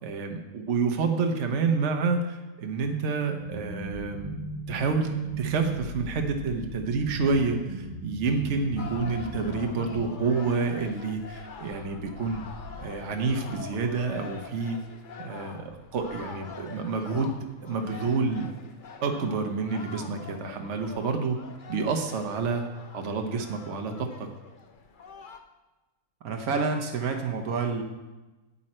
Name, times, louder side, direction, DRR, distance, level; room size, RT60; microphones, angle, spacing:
voice 1, 0.0-5.1 5.4-12.4 12.8-14.8 15.2-17.3 17.6-18.5 19.0-21.4 21.7-22.6 22.9-24.1, right 4 dB, 55° right, 4 dB, 1.2 m, -28 dB
sound 1, 3.4-10.0, right 3 dB, 70° left, 3.3 m, -37 dB
sound 2, 8.8-25.4, left 5 dB, 45° left, 0.7 m, -45 dB
voice 2, 26.2-27.8, right 4 dB, 70° right, 3 dB, 1.3 m, -28 dB
10.5 x 8.7 x 4.4 m, 1.1 s
omnidirectional pair, 1.6 m